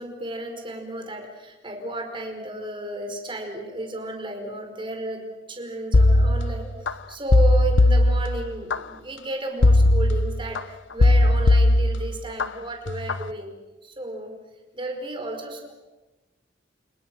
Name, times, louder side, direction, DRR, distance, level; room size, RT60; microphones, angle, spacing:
voice 1, 0.0-10.6 10.9-13.5 13.8-14.3 14.7-15.7, right 1 dB, 25° right, 4 dB, 5.0 m, -33 dB
sound 1, 5.9-6.9 7.3-8.8 9.6-10.6 11.0-12.5 12.9-13.2, left 2 dB, 75° left, 0.9 m, -18 dB
29.5 x 29.0 x 6.3 m, 1.1 s
head